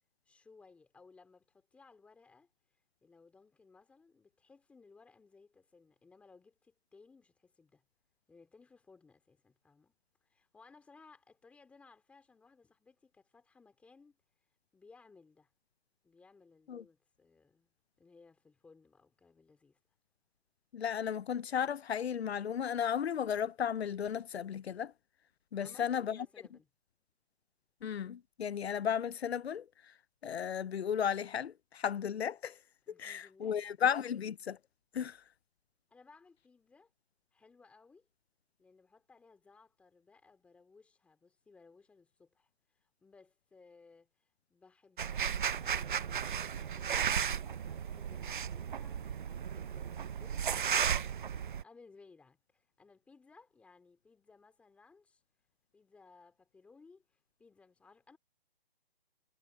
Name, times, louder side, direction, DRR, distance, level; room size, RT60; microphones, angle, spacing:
voice 1, 0.3-2.5 3.0-7.8 8.3-9.9 10.2-14.2 14.7-15.5 16.0-17.7 18.0-19.8 25.6-26.7 32.9-33.8 35.9-36.9 37.3-38.1 38.6-44.1 44.5-51.3 51.6-55.2 55.7-58.2, left 4 dB, 5° left, 2.8 m, -61 dB
voice 2, 20.7-24.9 25.5-26.3 27.8-29.7 30.2-32.6 33.0-34.6 34.9-35.2, left 8 dB, 85° left, 0.6 m, -34 dB
sound 1, 45.0-51.6, right 8 dB, 55° right, 0.8 m, -34 dB
hypercardioid pair, 160°, 31 cm